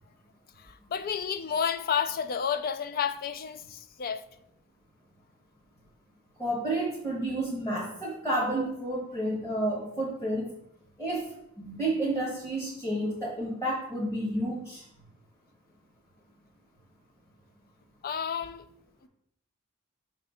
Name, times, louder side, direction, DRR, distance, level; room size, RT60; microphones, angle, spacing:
voice 1, 0.6-4.2 18.0-18.6 19.0-19.1, left 7 dB, 45° left, 0.4 m, -31 dB
voice 2, 6.4-10.5 11.0-14.8, right 1 dB, 15° left, 1.4 m, -30 dB
5.3 x 3.2 x 5.5 m
head